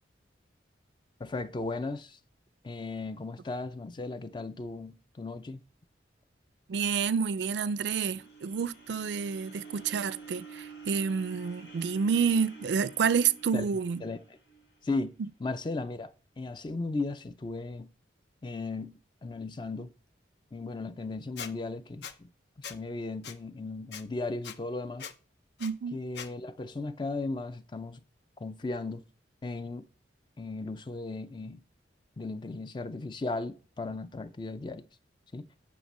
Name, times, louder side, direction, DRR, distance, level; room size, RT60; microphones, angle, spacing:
voice 1, 1.2-2.2 2.6-5.6 13.5-13.7 14.0-14.4 14.8-15.1 15.4-17.9 18.4-18.9 19.2-19.9 20.5-22.3 22.6-25.1 25.9-28.0 28.4-29.0 29.4-29.9 30.4-31.6 32.2-34.8 35.3-35.5, left 3 dB, 25° left, 0.4 m, -36 dB
voice 2, 6.7-14.0 25.6-26.0, right 6 dB, 70° right, 0.4 m, -29 dB
sound 1, 7.1-15.2, right 4 dB, 90° left, 4.0 m, -49 dB
Squeak, 21.4-21.5 22.0-22.1 22.6-22.8 23.2-23.3 23.9-24.0 24.4-24.6 25.0-25.1 25.6-25.7 26.1-26.3, left 7 dB, 65° left, 0.6 m, -40 dB
9.4 x 5.8 x 4.2 m
head